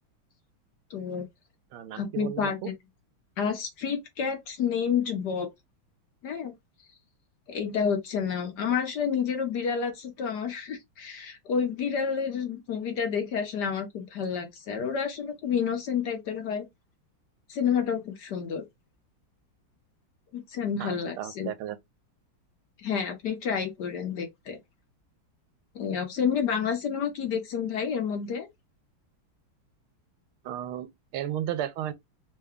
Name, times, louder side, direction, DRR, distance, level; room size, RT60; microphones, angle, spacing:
voice 1, 0.9-1.3 1.9-2.7 3.4-5.5 6.2-6.5 7.5-16.7 17.5-18.6 20.3-21.5 22.8-24.6 25.7-28.5, left 7 dB, 60° left, 1.2 m, -29 dB
voice 2, 1.7-2.7 20.8-21.8 30.4-31.9, right 11 dB, 90° right, 1.5 m, -34 dB
3.7 x 2.2 x 3.5 m
omnidirectional pair, 2.3 m